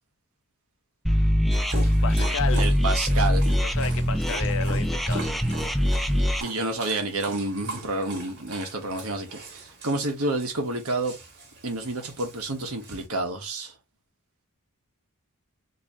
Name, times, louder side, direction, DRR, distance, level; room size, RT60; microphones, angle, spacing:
sound 1, 1.0-6.4, equal, ahead, 0.4 m, -23 dB
Dog, 1.5-13.1, right 2 dB, 50° right, 1.8 m, -41 dB
voice 1, 1.7-2.7 3.6-5.8, left 6 dB, 65° left, 0.7 m, -33 dB
voice 2, 2.6-3.4 6.4-11.1 11.6-13.7, right 2 dB, 70° right, 1.4 m, -29 dB
4.0 x 3.0 x 2.9 m
head